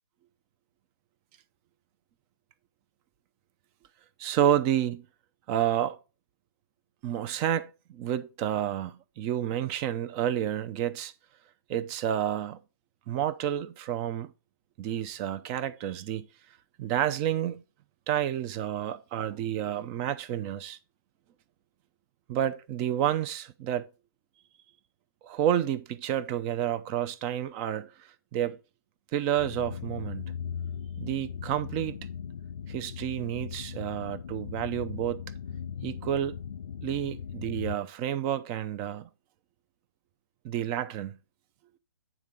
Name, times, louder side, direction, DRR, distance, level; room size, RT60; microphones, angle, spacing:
voice 1, 4.2-5.0 5.5-6.0 7.0-11.1 11.7-12.6 13.1-14.3 14.8-16.3 16.8-17.6 18.1-20.8 22.3-23.9 25.2-27.9 28.3-28.6 29.1-30.2 31.0-32.0 32.7-35.2 35.8-36.4 36.8-39.1 40.4-41.2, right 11 dB, 25° right, 0.5 m, -30 dB
sound 1, 29.4-37.8, left 7 dB, 75° left, 0.5 m, -38 dB
9.2 x 3.7 x 5.2 m
hypercardioid pair, 145°, 12 cm